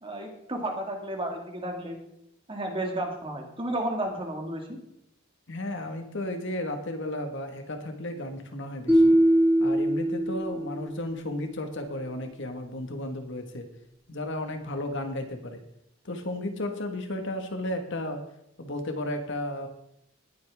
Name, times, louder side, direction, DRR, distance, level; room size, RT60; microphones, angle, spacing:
voice 1, 0.0-2.0 2.5-4.8, right 1 dB, 25° right, 2 dB, 2.0 m, -32 dB
voice 2, 5.5-9.2 9.6-13.7 14.1-15.6 16.1-18.2 18.6-19.7, left 1 dB, 65° left, 5 dB, 1.6 m, -33 dB
sound 1, 8.9-11.0, right 1 dB, 5° right, 2.1 m, -22 dB
19.0 x 8.3 x 3.6 m, 0.79 s
head